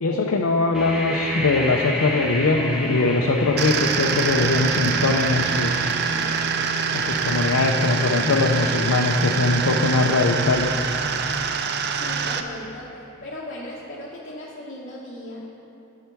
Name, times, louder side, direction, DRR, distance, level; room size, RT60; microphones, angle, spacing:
voice 1, 0.0-5.8 6.9-10.8, left 3 dB, 85° left, 1 dB, 0.6 m, -21 dB
sound 1, 0.7-12.5, equal, 5° right, 1.3 m, -34 dB
sound 2, 3.6-12.4, right 5 dB, 55° right, 0.5 m, -24 dB
voice 2, 5.4-6.3 11.9-12.9 13.2-15.5, left 1 dB, 40° left, -6 dB, 1.1 m, -38 dB
11.5 x 5.7 x 4.6 m, 2.9 s
head